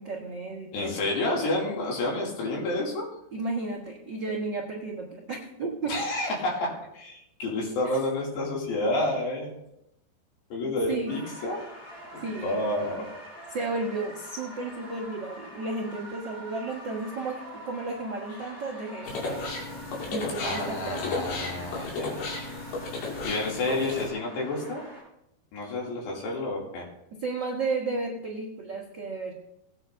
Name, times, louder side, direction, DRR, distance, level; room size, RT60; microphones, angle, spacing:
voice 1, 0.0-1.0 3.3-6.0 7.8-8.0 10.6-11.2 12.2-12.6 13.0-13.1 13.5-19.5 20.1-21.3 27.1-29.3, right 3 dB, 85° right, -3 dB, 1.0 m, -33 dB
voice 2, 0.7-3.1 5.9-9.5 10.5-11.6 12.1-13.0 20.4-22.6 23.2-24.8 25.5-26.9, left 2 dB, 85° left, -2 dB, 4.6 m, -30 dB
sound 1, 11.1-25.0, equal, 45° left, 6.2 m, -45 dB
sound 2, 19.0-24.1, left 3 dB, 70° left, 4.1 m, -34 dB
18.5 x 9.6 x 2.6 m, 0.80 s
omnidirectional pair, 4.7 m